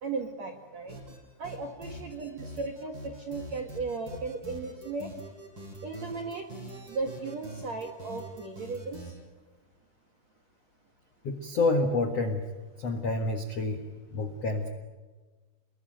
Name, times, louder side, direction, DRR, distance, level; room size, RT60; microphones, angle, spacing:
voice 1, 0.0-1.0 1.4-5.1 5.8-6.5 6.9-9.1, right 4 dB, 60° right, 4 dB, 1.9 m, -36 dB
sound 1, 0.9-1.2 1.4-9.1, right 1 dB, 20° right, 7.0 m, -44 dB
voice 2, 11.2-12.4 12.8-13.8 14.1-14.7, left 2 dB, 80° left, 6 dB, 1.4 m, -28 dB
29.0 x 21.0 x 9.3 m, 1.3 s
omnidirectional pair, 5.7 m